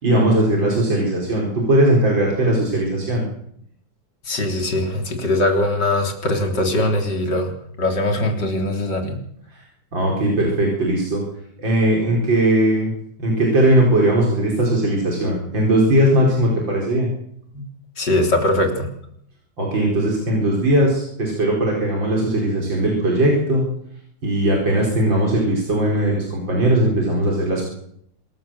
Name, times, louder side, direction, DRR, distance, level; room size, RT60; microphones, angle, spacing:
voice 1, 0.0-3.2 9.5-9.6 9.9-11.2 11.6-12.9 13.2-17.1 19.6-23.6 24.2-27.6, right 1 dB, 85° right, -1 dB, 5.5 m, -19 dB
voice 2, 4.2-9.2 17.5-17.7 18.0-18.9, left 1 dB, 65° left, 4 dB, 4.1 m, -21 dB
26.5 x 13.5 x 7.7 m, 0.70 s
omnidirectional pair, 2.0 m